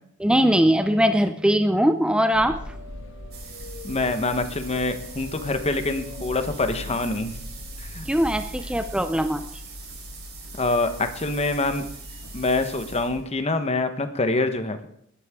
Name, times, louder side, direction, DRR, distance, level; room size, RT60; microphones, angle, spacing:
voice 1, 0.2-2.6 8.1-9.5, equal, 5° right, 9 dB, 0.6 m, -21 dB
sound 1, 2.3-13.2, left 1 dB, 65° left, 1.8 m, -40 dB
sound 2, 3.3-13.4, right 6 dB, 50° right, 4.7 m, -43 dB
voice 2, 3.8-7.3 7.9-8.1 10.6-11.8 12.3-14.9, left 2 dB, 30° left, 8 dB, 1.2 m, -25 dB
20.5 x 11.5 x 3.7 m, 0.71 s
head